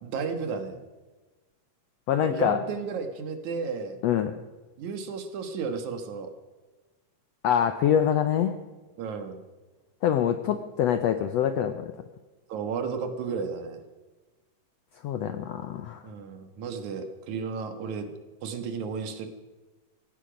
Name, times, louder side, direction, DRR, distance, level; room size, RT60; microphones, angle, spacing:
voice 1, 0.0-0.8 2.2-4.0 4.8-6.3 9.0-9.4 12.5-13.8 16.0-18.1 18.4-19.3, right 5 dB, 65° right, 7 dB, 2.7 m, -33 dB
voice 2, 2.1-2.6 4.0-4.3 7.4-8.6 10.0-11.9 15.0-16.0, left 9 dB, 80° left, 9 dB, 1.5 m, -25 dB
17.0 x 15.5 x 5.2 m, 1.2 s
omnidirectional pair, 3.8 m